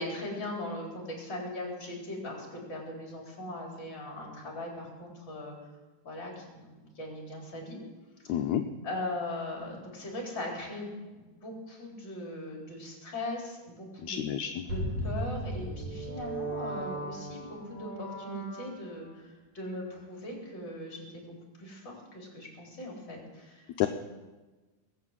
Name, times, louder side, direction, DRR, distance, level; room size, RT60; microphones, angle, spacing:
voice 1, 0.0-5.6 6.0-7.8 8.8-14.2 14.7-21.3 21.6-23.7, left 1 dB, 35° left, -2 dB, 4.5 m, -39 dB
voice 2, 8.3-8.6 14.0-14.6 23.8-23.9, left 11 dB, 75° left, 6 dB, 1.9 m, -29 dB
sound 1, 14.7-19.1, right 1 dB, 70° right, 6.7 m, -37 dB
20.5 x 8.9 x 7.4 m, 1.2 s
omnidirectional pair, 3.7 m